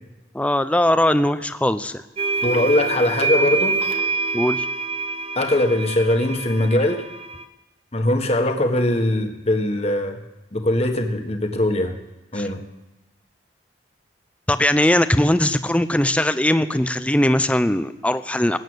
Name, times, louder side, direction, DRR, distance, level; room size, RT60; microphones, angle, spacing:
voice 1, 0.3-2.0 4.3-4.7 12.3-12.5 14.5-18.6, left 1 dB, 5° left, 12 dB, 0.5 m, -20 dB
sound 1, 2.2-7.4, right 4 dB, 30° right, 0.9 m, -26 dB
voice 2, 2.4-3.8 5.3-7.0 7.9-10.2 10.5-11.9 12.3-12.6, left 1 dB, 35° left, 5 dB, 1.5 m, -21 dB
18.5 x 8.8 x 8.0 m, 1.0 s
head